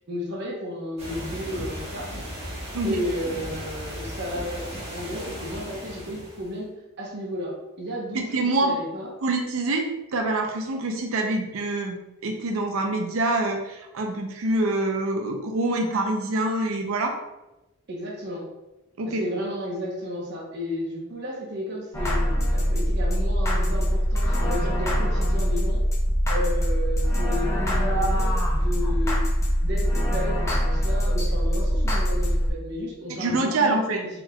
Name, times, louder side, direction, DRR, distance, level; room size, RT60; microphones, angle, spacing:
voice 1, 0.1-2.1 2.8-9.1 17.9-18.4 19.1-25.8 26.3-29.2 29.6-34.1, left 1 dB, 50° right, -3 dB, 0.9 m, -33 dB
sound 1, 1.0-6.5, equal, 30° right, 1.1 m, -36 dB
voice 2, 8.1-8.7 9.2-9.8 10.1-17.1 19.0-19.2 33.1-34.0, right 2 dB, 65° right, 3 dB, 0.5 m, -25 dB
sound 2, 21.9-32.5, equal, 15° left, 0.5 m, -23 dB
4.3 x 3.8 x 2.2 m, 0.97 s
head